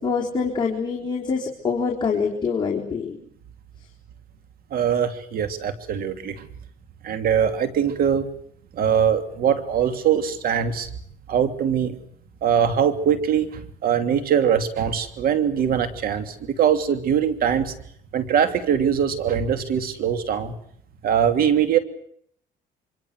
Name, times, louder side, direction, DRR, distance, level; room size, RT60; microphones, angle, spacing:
voice 1, 0.0-3.2, left 5 dB, 25° left, -3 dB, 4.2 m, -25 dB
voice 2, 4.7-6.5 7.0-8.3 8.7-10.9 11.3-11.9 12.4-17.7 18.1-20.5 21.0-21.8, right 8 dB, 60° right, 9 dB, 2.8 m, -22 dB
25.5 x 25.5 x 7.8 m, 0.65 s
cardioid pair, 110°, 17 cm